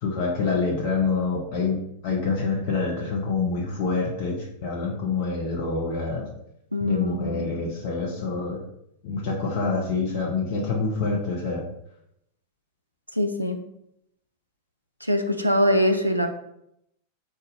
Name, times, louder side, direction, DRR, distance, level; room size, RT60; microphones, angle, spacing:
voice 1, 0.0-1.8 2.0-6.3 6.8-8.6 9.0-11.6, left 4 dB, 45° left, -2 dB, 0.8 m, -26 dB
voice 2, 6.7-7.6 13.1-13.6 15.0-16.3, equal, 90° right, 5 dB, 0.3 m, -23 dB
3.9 x 2.5 x 4.0 m, 0.78 s
figure-of-eight pair, 90°, 0 cm